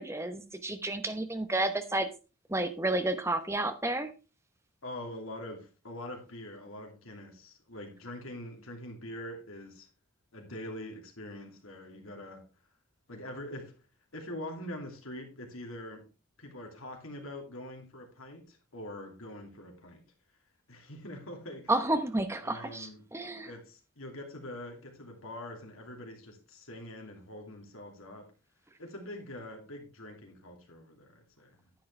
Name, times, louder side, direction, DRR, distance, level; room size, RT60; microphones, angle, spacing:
voice 1, 0.0-2.1 2.5-4.1 21.7-23.5, right 2 dB, 15° right, 0.9 m, -31 dB
voice 2, 4.8-9.9 10.3-12.5 13.1-13.7 14.1-16.1 16.4-20.0 20.7-21.7 22.4-23.1 23.4-28.3 28.8-31.6, left 1 dB, 85° left, 2.7 m, -44 dB
10.0 x 8.5 x 3.3 m
head